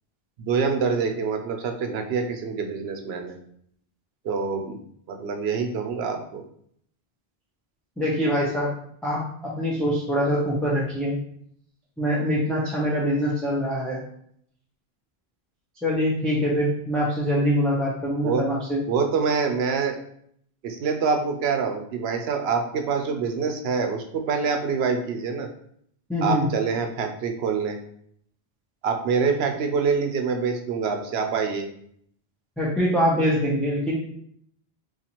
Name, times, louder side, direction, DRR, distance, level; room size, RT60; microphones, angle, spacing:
voice 1, 0.4-3.4 4.2-4.8 5.1-6.4 18.2-18.4 18.9-20.0 20.6-25.5 26.2-27.8 28.8-31.7, right 5 dB, 80° right, 5 dB, 0.8 m, -25 dB
voice 2, 8.0-8.7 9.0-11.2 12.0-14.0 15.8-18.8 26.1-26.4 32.6-34.0, equal, ahead, -6 dB, 0.5 m, -24 dB
4.0 x 2.5 x 2.9 m, 0.67 s
omnidirectional pair, 1.0 m